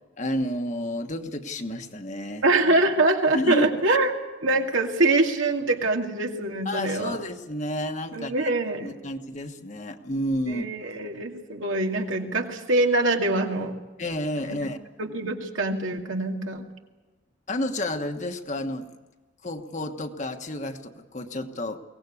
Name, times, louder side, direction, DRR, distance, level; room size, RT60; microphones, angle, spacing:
voice 1, 0.2-2.4 3.3-3.7 6.6-8.5 8.8-11.0 14.0-14.8 17.5-19.0 19.4-21.8, left 1 dB, 35° left, 6 dB, 1.3 m, -30 dB
voice 2, 2.4-4.1 4.4-7.2 8.1-8.9 10.5-13.7 14.5-14.6 15.0-16.6, right 2 dB, 85° right, 2 dB, 2.4 m, -24 dB
23.0 x 18.0 x 8.4 m, 1.2 s
head